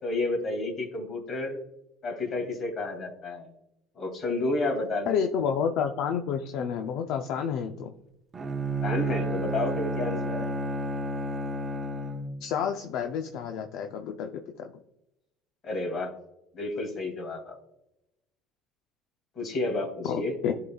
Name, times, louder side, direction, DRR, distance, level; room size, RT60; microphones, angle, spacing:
voice 1, 0.0-1.6 2.0-3.5 4.0-5.2 8.8-10.5 15.6-16.1 16.5-17.6 19.4-20.3, left 2 dB, 45° left, 2 dB, 2.3 m, -31 dB
voice 2, 5.1-7.9 12.4-14.7 20.1-20.5, left 7 dB, 70° left, 5 dB, 0.5 m, -30 dB
Bowed string instrument, 8.3-12.4, right 1 dB, 25° right, 0.7 m, -31 dB
11.0 x 3.8 x 2.3 m, 0.85 s
cardioid pair, 115°, 0 cm